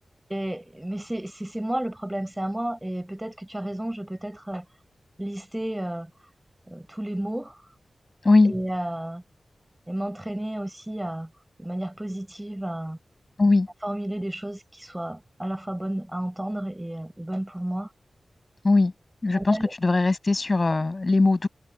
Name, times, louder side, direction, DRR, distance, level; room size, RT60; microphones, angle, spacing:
voice 1, 0.3-4.6 5.2-6.1 6.7-7.6 8.4-9.2 9.9-11.3 11.6-13.0 13.8-17.9 19.3-19.7, right 1 dB, 15° right, 4.5 m, -32 dB
voice 2, 19.2-21.5, left 3 dB, 40° left, 6.9 m, -20 dB
cardioid pair, 65°, 0 cm